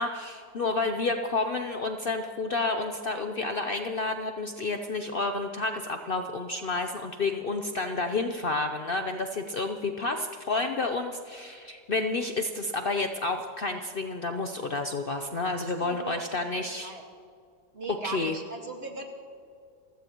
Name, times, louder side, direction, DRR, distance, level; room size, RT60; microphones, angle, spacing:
voice 1, 0.0-16.9 17.9-18.4, left 3 dB, 90° left, 6 dB, 0.4 m, -30 dB
voice 2, 15.6-17.0 17.7-19.1, right 3 dB, 35° right, 2 dB, 2.0 m, -39 dB
29.5 x 16.0 x 3.0 m, 2.3 s
omnidirectional pair, 2.0 m